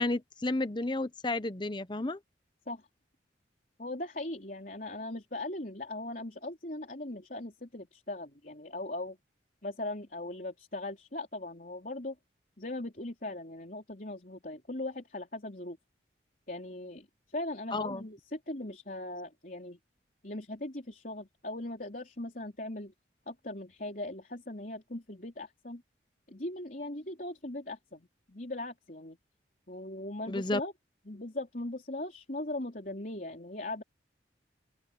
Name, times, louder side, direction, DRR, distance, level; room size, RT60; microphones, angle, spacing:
voice 1, 0.0-2.2 17.7-18.0 30.3-30.6, left 2 dB, 25° left, 0.8 m, -31 dB
voice 2, 3.8-9.2 9.6-12.2 12.6-15.8 16.5-19.8 20.2-22.9 23.3-25.8 26.3-29.2 29.7-30.7 31.1-33.8, left 2 dB, 45° left, 3.9 m, -39 dB
open air
head